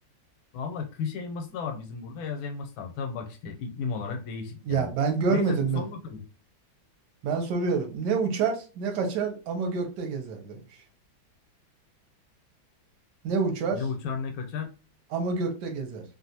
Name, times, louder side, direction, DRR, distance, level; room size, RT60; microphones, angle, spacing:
voice 1, 0.5-4.9 5.3-6.2 13.7-14.7, left 5 dB, 85° left, 1.4 m, -34 dB
voice 2, 4.7-5.8 7.2-10.6 13.2-13.8 15.1-16.0, right 5 dB, 65° right, 1.2 m, -27 dB
3.2 x 2.4 x 2.7 m
omnidirectional pair, 2.2 m